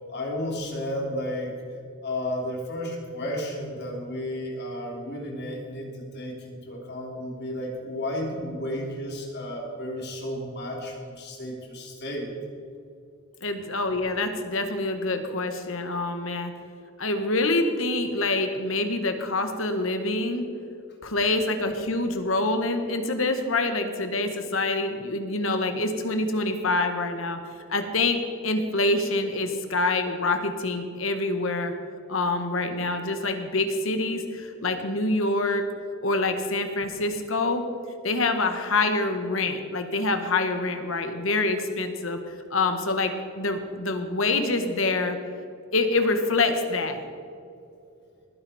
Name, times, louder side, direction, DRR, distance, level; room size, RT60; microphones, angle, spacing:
voice 1, 0.1-1.5 2.0-12.3, left 1 dB, 55° left, -1 dB, 3.2 m, -33 dB
voice 2, 13.4-16.5 17.0-20.5 21.0-27.4 27.7-31.7 32.1-35.6 36.0-37.6 38.0-42.2 42.5-45.2 45.7-47.0, left 2 dB, 70° left, 7 dB, 1.5 m, -26 dB
19.5 x 10.0 x 4.3 m, 2.5 s
head